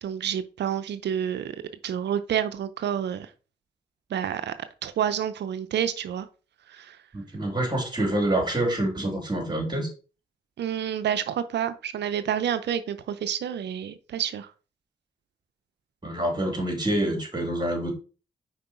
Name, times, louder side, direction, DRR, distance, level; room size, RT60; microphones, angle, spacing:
voice 1, 0.0-1.6 1.8-3.3 4.1-4.5 4.8-6.3 6.7-7.0 10.6-14.5, right 9 dB, 75° right, 0.6 m, -29 dB
voice 2, 7.1-9.9 16.0-17.9, right 1 dB, 25° right, 3.3 m, -26 dB
5.1 x 4.7 x 4.4 m
supercardioid pair, 45°, 18 cm